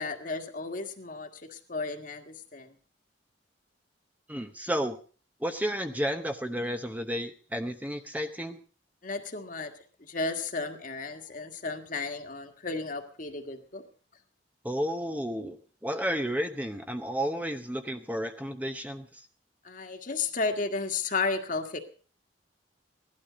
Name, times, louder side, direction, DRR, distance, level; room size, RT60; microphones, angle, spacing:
voice 1, 0.0-2.7 9.0-9.7 10.0-13.8 19.6-21.8, left 4 dB, 45° left, 5 dB, 1.7 m, -33 dB
voice 2, 4.3-5.0 5.4-8.6 14.6-15.6 15.8-19.2, equal, 10° right, 7 dB, 0.8 m, -32 dB
17.0 x 12.0 x 5.1 m, 0.40 s
head